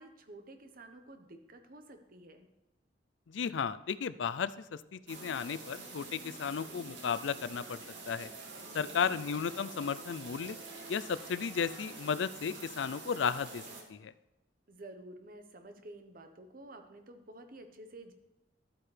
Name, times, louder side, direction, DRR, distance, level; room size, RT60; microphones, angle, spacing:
voice 1, 0.0-2.5 8.5-9.1 14.7-18.1, right 1 dB, 50° right, 6 dB, 1.1 m, -51 dB
voice 2, 3.3-4.5 4.9-7.8 8.1-8.3 8.7-10.6 10.9-13.6 13.9-14.1, left 6 dB, 85° left, 16 dB, 0.4 m, -34 dB
sound 1, 5.1-13.8, right 3 dB, 80° right, 2.2 m, -47 dB
12.5 x 8.7 x 3.3 m, 1.0 s
head